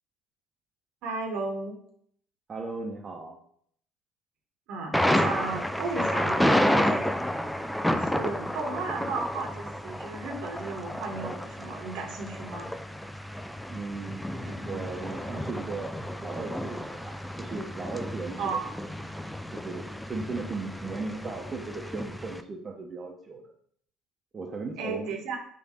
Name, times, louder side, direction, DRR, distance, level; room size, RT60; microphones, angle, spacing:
voice 1, 1.0-1.7 4.7-7.1 7.9-12.7 14.4-14.8 18.4-18.7 24.8-25.4, right 3 dB, 60° right, 2 dB, 0.9 m, -34 dB
voice 2, 2.5-3.4 13.7-14.2 14.6-15.9 16.2-17.1 17.4-18.6 19.5-23.4 24.3-25.1, right 3 dB, 35° right, 0 dB, 0.7 m, -37 dB
Thunder, 4.9-22.4, equal, 5° left, 0.4 m, -31 dB
4.8 x 2.5 x 4.3 m, 0.64 s
figure-of-eight pair, 55°, 0 cm